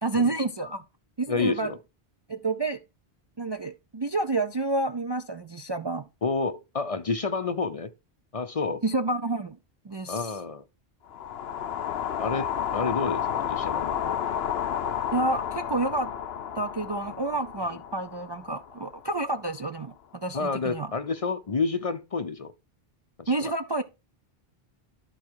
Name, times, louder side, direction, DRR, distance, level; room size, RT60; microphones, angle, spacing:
voice 1, 0.0-0.8 1.2-1.7 2.3-2.8 3.4-6.1 8.8-9.6 9.8-10.4 15.1-16.1 16.6-20.9 23.3-23.8, right 2 dB, 40° right, 0.4 m, -29 dB
voice 2, 1.3-1.8 6.2-7.9 8.3-8.8 10.1-10.6 12.2-14.2 17.7-17.8 20.3-22.5 23.2-23.5, left 4 dB, 40° left, 0.6 m, -29 dB
sound 1, 11.1-19.3, left 9 dB, 80° left, 0.9 m, -31 dB
11.5 x 4.2 x 4.6 m
omnidirectional pair, 1.0 m